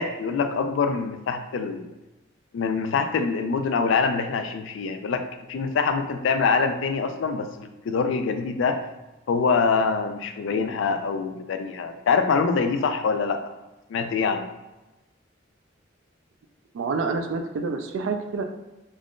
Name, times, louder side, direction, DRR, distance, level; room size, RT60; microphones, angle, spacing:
voice 1, 0.0-1.9 2.5-5.2 5.5-8.8 9.3-13.5 13.9-14.5, left 5 dB, 75° left, 8 dB, 0.3 m, -24 dB
voice 2, 16.7-18.4, right 4 dB, 75° right, 5 dB, 0.3 m, -28 dB
2.5 x 2.4 x 3.5 m, 1.0 s
head